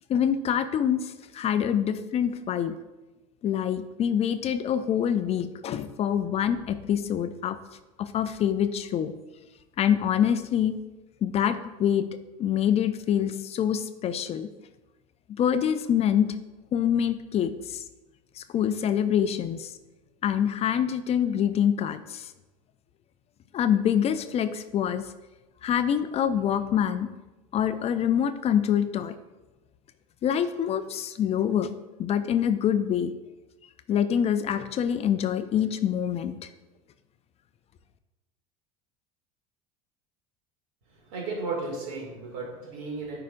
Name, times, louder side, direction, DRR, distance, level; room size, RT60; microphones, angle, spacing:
voice 1, 0.1-2.7 3.4-7.6 8.0-9.1 9.8-10.8 11.2-12.1 12.4-14.5 15.4-16.3 16.7-17.8 18.4-19.7 20.2-22.3 23.5-25.1 25.6-27.1 27.5-29.2 30.2-31.7 32.0-33.1 33.9-36.5, left 9 dB, 35° left, 11 dB, 0.4 m, -25 dB
voice 2, 40.9-43.2, right 3 dB, 75° right, -1 dB, 2.2 m, -34 dB
9.1 x 4.9 x 2.5 m, 1.1 s
supercardioid pair, 95°, 18 cm